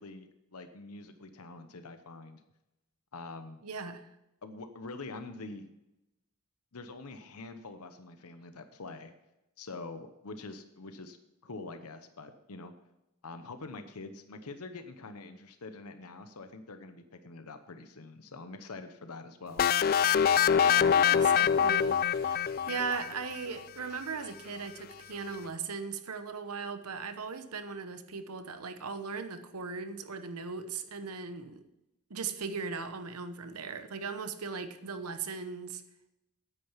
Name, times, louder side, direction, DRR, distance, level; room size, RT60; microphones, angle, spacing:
voice 1, 0.0-2.4 3.1-3.6 4.4-5.7 6.7-9.1 9.6-11.2 11.4-12.7 13.2-19.6, left 3 dB, 85° left, 8 dB, 0.9 m, -45 dB
voice 2, 3.6-4.0 20.6-31.6 32.1-35.8, right 5 dB, 90° right, 9 dB, 1.0 m, -38 dB
sound 1, 19.6-23.4, left 8 dB, 40° left, 0.3 m, -24 dB
9.4 x 8.9 x 5.7 m, 0.92 s
head